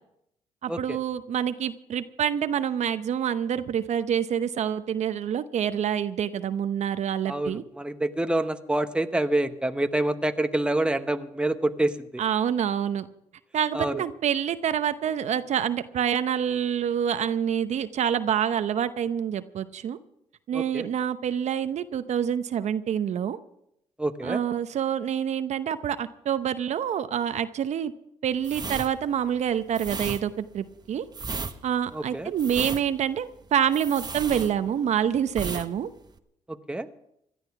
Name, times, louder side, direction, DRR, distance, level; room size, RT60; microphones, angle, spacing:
voice 1, 0.6-7.6 12.2-13.1 13.5-20.0 20.5-23.4 24.2-27.9 28.2-31.0 31.6-35.9, right 9 dB, 60° right, 11 dB, 0.8 m, -27 dB
voice 2, 7.3-12.2 13.7-14.0 20.5-20.9 24.0-24.4 31.9-32.3 36.5-36.9, right 1 dB, 10° right, 8 dB, 1.0 m, -27 dB
sound 1, 28.4-35.0 35.3-35.7 36.0-36.2, right 4 dB, 30° right, 1.2 m, -35 dB
17.5 x 12.0 x 5.9 m, 0.76 s
supercardioid pair, 75°, 13 cm